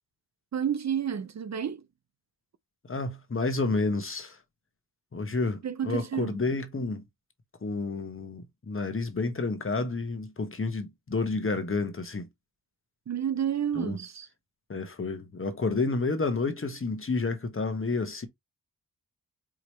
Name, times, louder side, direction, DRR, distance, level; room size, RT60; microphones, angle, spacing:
voice 1, 0.5-1.9 5.6-6.4 13.1-14.3, right 8 dB, 50° right, 0.5 m, -30 dB
voice 2, 2.8-4.4 5.1-7.0 7.6-12.3 13.7-14.0 14.7-18.3, left 3 dB, 35° left, 1.2 m, -30 dB
4.9 x 2.9 x 3.0 m
cardioid pair, 50°, 37 cm